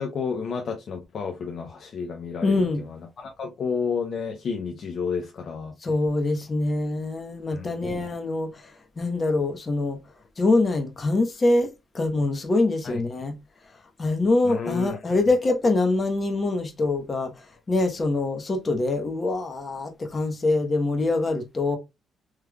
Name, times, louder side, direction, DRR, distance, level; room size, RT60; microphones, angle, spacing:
voice 1, 0.0-5.7 7.5-7.8 12.8-13.0 14.4-15.2, left 5 dB, 55° left, 0.6 m, -31 dB
voice 2, 2.4-2.8 5.8-10.0 10.4-11.7 11.9-13.4 14.0-17.3 17.7-21.8, left 2 dB, 35° left, 0.9 m, -24 dB
3.4 x 3.2 x 2.2 m
cardioid pair, 90°, 0 cm